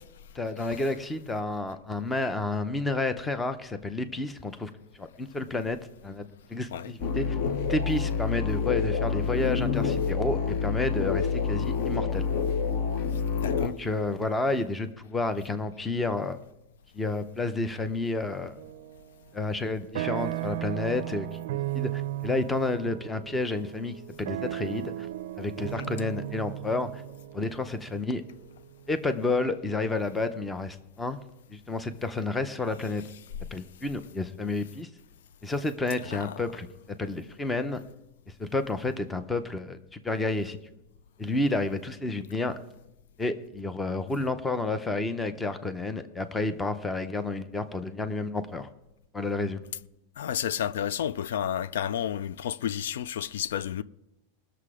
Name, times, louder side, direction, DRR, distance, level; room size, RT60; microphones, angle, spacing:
voice 1, 0.3-4.7 5.0-7.4 7.7-12.3 13.6-16.4 16.9-18.6 19.3-21.3 21.7-25.1 25.4-27.0 27.3-28.2 28.9-31.2 31.5-33.1 33.5-34.9 35.4-36.7 37.0-37.8 38.4-40.6 41.2-42.5 43.2-48.7 49.1-49.6, left 2 dB, 5° left, 0.6 m, -30 dB
sound 1, 7.0-13.7, left 5 dB, 40° left, 0.8 m, -27 dB
voice 2, 13.4-13.7 36.1-36.3 50.2-53.8, left 10 dB, 80° left, 0.4 m, -31 dB
sound 2, 18.6-19.1 19.5-29.5, right 15 dB, 60° right, 0.5 m, -36 dB
20.0 x 6.8 x 4.9 m
supercardioid pair, 170°, 0 cm